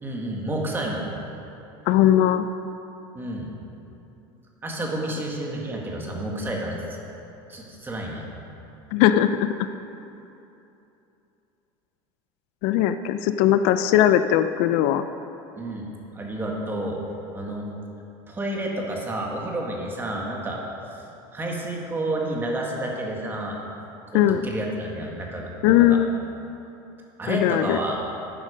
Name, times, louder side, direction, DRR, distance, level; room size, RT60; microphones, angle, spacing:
voice 1, 0.0-1.1 3.1-3.5 4.6-7.0 7.5-8.2 15.6-17.0 17.3-17.7 18.3-20.6 20.9-21.1 21.3-23.6 24.1-26.0 27.2-28.0, right 1 dB, 15° right, -1 dB, 1.9 m, -30 dB
voice 2, 1.9-2.5 8.9-9.5 12.6-15.1 24.1-24.4 25.6-26.1 27.3-27.8, left 11 dB, 65° left, 10 dB, 0.5 m, -19 dB
12.0 x 9.6 x 5.1 m, 2.9 s
supercardioid pair, 135°, 13 cm